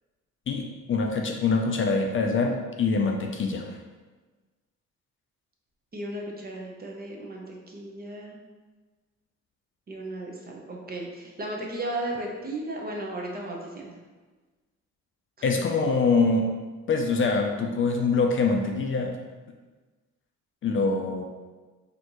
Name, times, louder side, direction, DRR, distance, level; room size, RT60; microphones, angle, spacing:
voice 1, 0.5-3.8 15.4-16.5 16.9-19.2 20.6-21.2, left 4 dB, 40° left, 2 dB, 0.4 m, -24 dB
voice 2, 5.9-8.4 9.9-14.0, right 1 dB, 30° right, 0 dB, 0.8 m, -35 dB
4.3 x 2.6 x 3.0 m, 1.3 s
cardioid pair, 90°, 30 cm